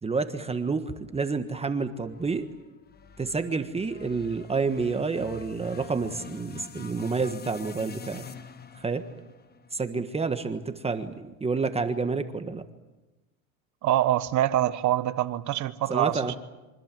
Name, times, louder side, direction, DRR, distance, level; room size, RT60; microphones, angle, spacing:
voice 1, 0.0-2.5 3.2-8.2 8.7-9.0 9.7-12.6 15.9-16.4, right 4 dB, 15° right, 8 dB, 1.5 m, -29 dB
sound 1, 2.0-10.4, left 6 dB, 25° left, 1.4 m, -46 dB
voice 2, 13.8-16.4, right 13 dB, 45° right, 13 dB, 1.4 m, -25 dB
27.0 x 25.0 x 7.7 m, 1.1 s
supercardioid pair, 115°, 39 cm